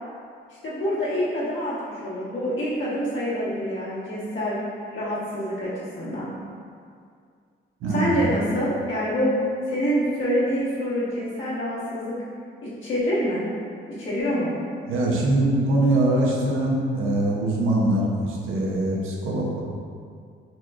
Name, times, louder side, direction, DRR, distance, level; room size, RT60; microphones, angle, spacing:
voice 1, 0.6-4.6 4.9-6.3 7.9-9.4 9.7-12.1 12.6-13.4 13.9-14.5, equal, 70° left, -9 dB, 1.4 m, -26 dB
voice 2, 7.8-8.2 14.9-19.6, right 1 dB, 90° right, -2 dB, 0.7 m, -23 dB
4.2 x 3.0 x 2.4 m, 2.2 s
cardioid pair, 90°, 21 cm